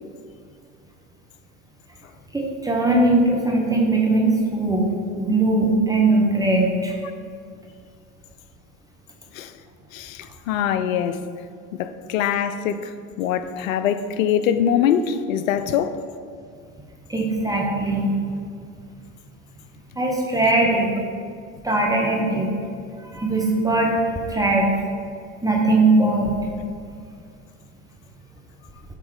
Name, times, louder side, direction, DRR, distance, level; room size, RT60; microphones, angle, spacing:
voice 1, 2.3-4.9 5.2-6.9 17.1-18.1 20.0-20.9 21.6-22.5 23.0-24.0 24.3-24.7 25.4-26.3, right 2 dB, 10° right, 1.0 m, -20 dB
voice 2, 9.9-11.2 11.7-16.0, left 9 dB, 80° left, 0.5 m, -23 dB
7.7 x 3.6 x 4.8 m
hypercardioid pair, 80°, 40 cm